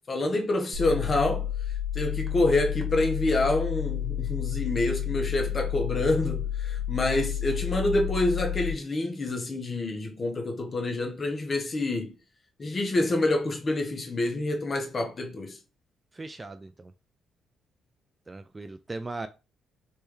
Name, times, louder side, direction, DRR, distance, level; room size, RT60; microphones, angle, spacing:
voice 1, 0.1-1.5 1.9-12.1 12.6-15.6, left 2 dB, 35° left, 1.1 m, -27 dB
sound 1, 0.7-8.7, left 10 dB, 50° right, 0.9 m, -31 dB
voice 2, 16.1-16.9 18.3-19.3, right 2 dB, 20° right, 0.3 m, -38 dB
3.2 x 3.2 x 3.1 m
cardioid pair, 90°, 0 cm